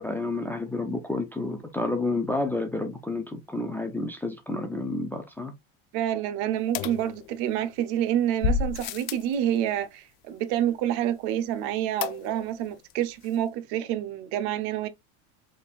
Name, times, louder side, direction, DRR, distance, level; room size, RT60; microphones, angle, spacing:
voice 1, 0.0-5.5, left 2 dB, 5° left, 0.4 m, -30 dB
voice 2, 5.9-14.9, right 11 dB, 65° right, 0.8 m, -28 dB
sound 1, 6.7-7.7 8.4-9.3 12.0-12.6 12.9-13.0 13.2-13.3, left 6 dB, 70° left, 0.6 m, -30 dB
4.2 x 3.6 x 2.4 m
cardioid pair, 140°, 40 cm